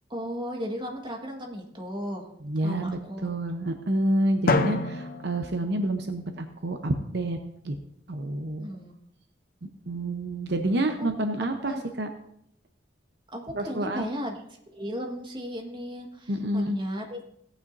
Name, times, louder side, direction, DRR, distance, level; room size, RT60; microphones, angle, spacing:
voice 1, 0.1-2.3 2.6-3.3 8.6-8.9 11.0-11.1 11.7-11.8 13.3-14.4 14.7-17.2, equal, 25° right, 2 dB, 1.6 m, -35 dB
voice 2, 2.4-7.4 7.6-7.7 8.1-8.7 9.9-12.1 13.5-14.0 16.3-16.8, right 1 dB, 65° right, 6 dB, 0.8 m, -28 dB
Drum, 4.5-6.4, left 2 dB, 55° left, 0.7 m, -28 dB
17.0 x 9.1 x 2.7 m, 0.72 s
head